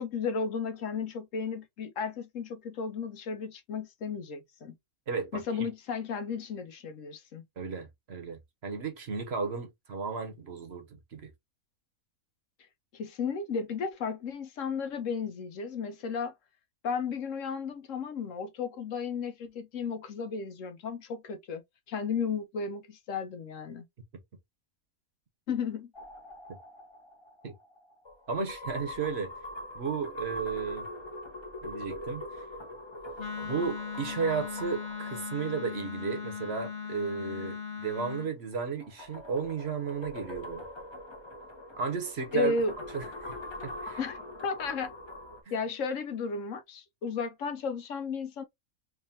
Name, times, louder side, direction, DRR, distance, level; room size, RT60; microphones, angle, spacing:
voice 1, 0.0-4.7 5.3-7.4 12.9-16.3 16.8-21.6 21.9-23.8 25.5-25.9 42.3-42.7 44.0-44.9 45.5-48.4, left 5 dB, 65° left, 1.0 m, -34 dB
voice 2, 5.1-5.7 7.6-11.3 27.4-27.5 28.3-29.3 29.7-30.8 31.6-32.2 33.4-40.6 41.8-42.5 42.9-43.3 43.6-44.0 45.5-45.6, right 5 dB, 50° right, 1.0 m, -34 dB
sound 1, 25.9-36.5 38.5-45.4, left 1 dB, 25° left, 0.7 m, -43 dB
Wind instrument woodwind instrument, 33.2-38.3, left 5 dB, 45° left, 1.0 m, -38 dB
3.6 x 3.1 x 2.8 m
omnidirectional pair, 1.5 m